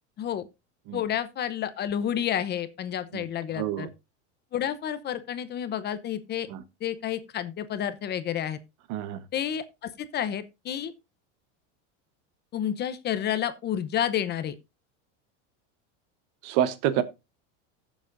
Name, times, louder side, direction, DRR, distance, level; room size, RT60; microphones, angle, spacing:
voice 1, 0.9-3.9 4.5-6.5 6.8-8.6 9.3-10.9 12.5-14.5, left 10 dB, 30° left, 0.8 m, -30 dB
voice 2, 3.5-3.9 6.5-6.6 8.9-9.2 16.4-17.0, right 11 dB, 55° right, 1.1 m, -27 dB
15.0 x 7.2 x 2.5 m
supercardioid pair, 140°, 36 cm